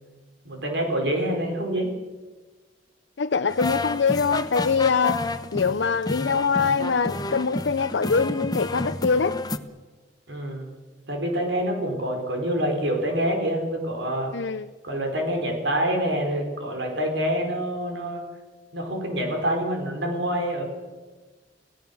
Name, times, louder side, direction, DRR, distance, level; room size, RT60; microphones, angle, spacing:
voice 1, 0.4-1.9 10.3-10.7 11.1-14.3 14.8-18.2 18.7-20.6, equal, 70° right, 3 dB, 4.6 m, -26 dB
voice 2, 3.2-9.4 14.3-14.7, left 5 dB, 70° left, 10 dB, 0.6 m, -23 dB
sound 1, 3.5-9.6, left 2 dB, 20° left, 1.0 m, -30 dB
29.5 x 17.0 x 7.0 m, 1.3 s
head